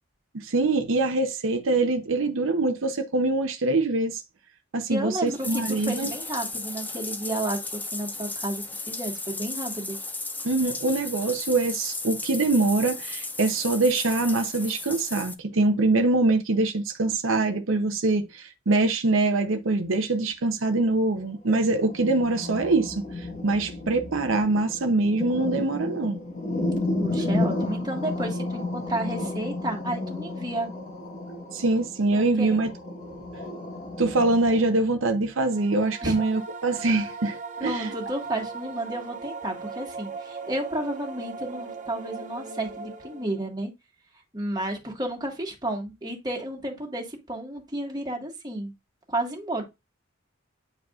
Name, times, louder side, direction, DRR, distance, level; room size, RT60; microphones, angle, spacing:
voice 1, 0.3-4.2 4.7-6.1 10.4-23.0 23.4-26.2 31.5-32.7 34.0-37.9, right 2 dB, 80° right, 0.8 m, -24 dB
voice 2, 4.9-10.0 27.0-30.7 32.2-32.6 36.0-36.2 37.6-43.7 44.3-48.7 49.1-49.6, right 1 dB, 20° right, 1.7 m, -32 dB
Bathtub (filling or washing), 5.3-15.3, left 2 dB, 10° left, 0.5 m, -35 dB
sound 1, 21.2-34.6, left 2 dB, 40° left, 1.7 m, -32 dB
sound 2, 35.3-43.5, right 4 dB, 40° right, 0.8 m, -38 dB
8.9 x 4.8 x 2.5 m
head